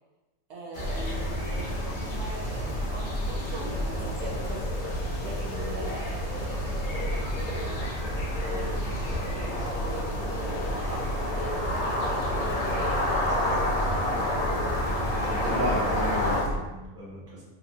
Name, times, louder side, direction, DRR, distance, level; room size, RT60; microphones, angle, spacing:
voice 1, 0.5-8.0 8.4-8.9 9.3-13.7, right 2 dB, 70° right, -2 dB, 0.8 m, -42 dB
sound 1, 0.7-16.4, left 1 dB, 55° left, 0.6 m, -30 dB
sound 2, 0.8-16.6, equal, 80° left, 0.9 m, -33 dB
voice 2, 15.3-17.4, equal, 15° right, -6 dB, 0.5 m, -34 dB
2.9 x 2.2 x 2.7 m, 1.1 s
omnidirectional pair, 1.2 m